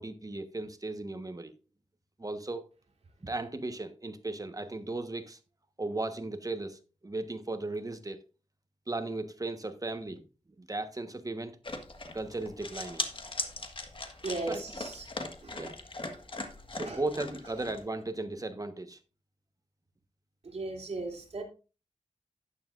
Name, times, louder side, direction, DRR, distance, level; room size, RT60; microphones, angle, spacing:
voice 1, 0.0-1.5 2.2-2.7 3.2-5.4 5.8-8.2 8.9-10.2 10.6-11.6 12.1-13.1 14.5-14.6 15.6-15.7 16.7-19.0, right 2 dB, 30° right, 1.3 m, -36 dB
sound 1, 11.6-17.8, left 2 dB, 45° left, 1.7 m, -39 dB
voice 2, 14.2-15.6 16.8-17.0 20.4-21.4, right 2 dB, 60° right, 3.1 m, -37 dB
11.5 x 9.7 x 2.6 m
cardioid pair, 55°, 12 cm